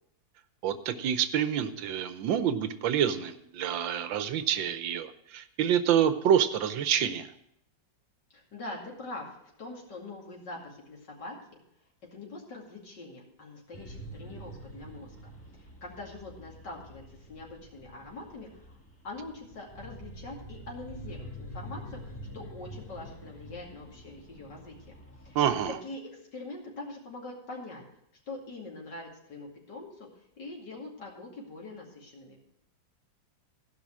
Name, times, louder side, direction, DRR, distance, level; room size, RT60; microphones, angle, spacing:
voice 1, 0.6-7.3 25.3-25.8, right 9 dB, 80° right, 11 dB, 1.5 m, -27 dB
voice 2, 8.3-11.6 12.1-15.3 15.6-18.8 19.0-25.0 25.2-25.4 25.8-26.0 26.3-27.8 28.3-30.1 30.4-32.4, left 2 dB, 65° left, -2 dB, 3.1 m, -43 dB
sound 1, 13.7-25.7, equal, 10° left, 1.4 m, -46 dB
16.0 x 5.6 x 6.1 m, 0.75 s
omnidirectional pair, 2.1 m